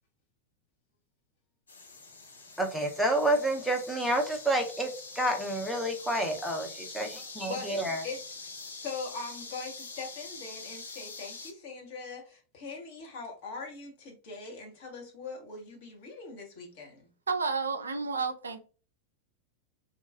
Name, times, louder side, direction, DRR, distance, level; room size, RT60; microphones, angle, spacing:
sound 1, 1.7-11.5, left 3 dB, 70° left, 0.6 m, -45 dB
voice 1, 2.6-4.9 5.2-8.0, right 1 dB, ahead, 0.7 m, -29 dB
voice 2, 7.5-8.2 8.7-17.1, left 4 dB, 50° left, 1.1 m, -41 dB
voice 3, 17.3-18.6, right 4 dB, 75° right, 0.3 m, -31 dB
2.8 x 2.3 x 2.4 m
figure-of-eight pair, 90°, 0 cm